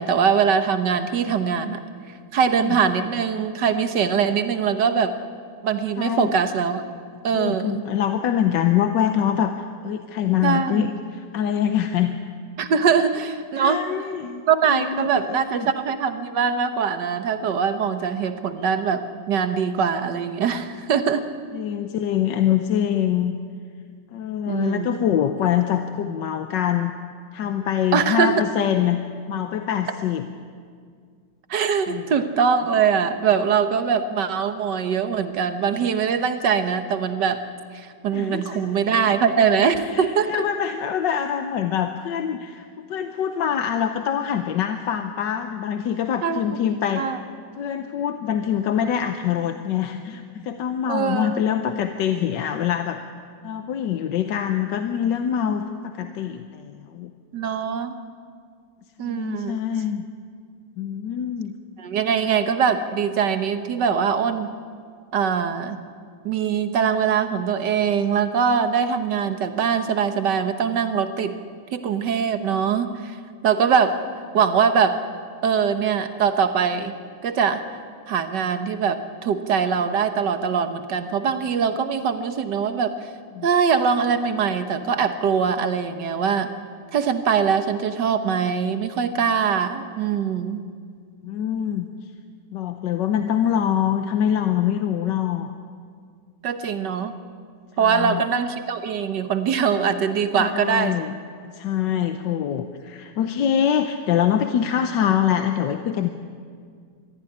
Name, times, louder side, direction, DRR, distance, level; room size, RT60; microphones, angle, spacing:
voice 1, 0.0-1.8 2.3-5.1 5.6-6.8 7.2-7.8 10.4-10.9 12.6-13.8 14.5-21.2 24.5-25.0 27.9-28.3 31.5-37.4 37.7-40.4 46.2-46.4 47.0-47.2 50.9-51.4 57.3-57.9 59.0-59.6 61.8-64.5 65.1-65.8 66.2-71.4 71.7-73.2 73.4-74.0 74.3-75.0 75.4-76.9 77.2-77.6 78.1-83.1 83.4-86.5 86.9-90.6 96.4-97.1 97.8-101.0 101.9-102.0, right 6 dB, 65° right, 9 dB, 1.7 m, -22 dB
voice 2, 6.0-6.3 7.3-12.2 13.6-14.4 14.7-15.4 21.5-23.3 24.1-26.9 27.3-30.3 31.9-32.1 38.1-38.7 39.9-47.1 47.6-53.0 53.4-57.1 59.0-60.0 60.8-61.5 83.3-83.5 91.2-91.8 92.5-95.5 97.8-98.2 100.3-101.1 101.5-106.1, left 9 dB, 70° left, 7 dB, 1.5 m, -24 dB
22.5 x 14.5 x 9.9 m, 2.1 s
omnidirectional pair, 2.1 m